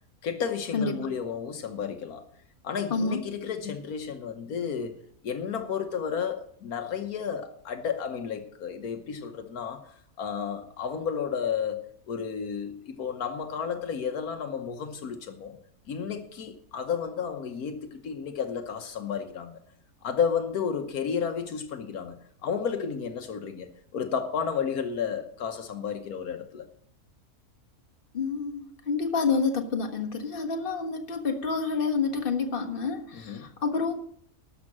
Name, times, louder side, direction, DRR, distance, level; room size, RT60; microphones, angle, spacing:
voice 1, 0.2-2.2 2.6-5.0 5.2-15.6 15.9-19.6 20.0-26.7 33.1-33.5, left 7 dB, 80° left, 1.5 m, -32 dB
voice 2, 28.1-33.9, left 4 dB, 40° left, 1.6 m, -28 dB
12.5 x 6.6 x 7.4 m
omnidirectional pair, 1.6 m